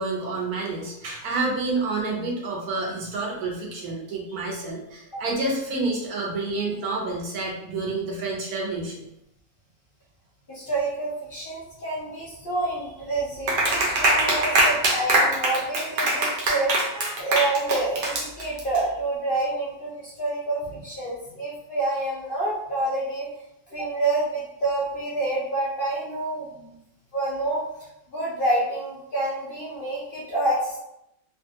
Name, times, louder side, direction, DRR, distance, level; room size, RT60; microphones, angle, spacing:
voice 1, 0.0-9.1, right 3 dB, 85° right, -2 dB, 1.3 m, -29 dB
voice 2, 10.5-23.3 23.7-26.7 27.1-27.6 28.1-30.8, right 2 dB, 50° left, -6 dB, 0.6 m, -28 dB
Clapping, 13.5-18.8, right 1 dB, 65° right, 0.5 m, -22 dB
3.1 x 2.3 x 2.7 m, 0.83 s
omnidirectional pair, 1.6 m